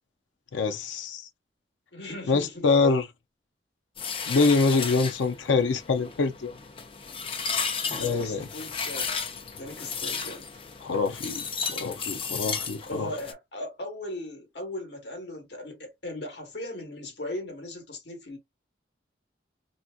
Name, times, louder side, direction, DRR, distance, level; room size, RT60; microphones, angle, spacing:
voice 1, 0.5-1.3 2.3-3.1 4.3-6.5 8.0-8.5 10.8-13.1, left 4 dB, 85° left, 0.5 m, -25 dB
voice 2, 1.9-2.7 4.9-5.0 7.8-9.1 9.6-10.5 12.9-18.4, left 1 dB, 70° left, 1.3 m, -38 dB
sound 1, 4.0-13.3, left 5 dB, 30° left, 0.5 m, -34 dB
3.4 x 2.7 x 2.2 m
head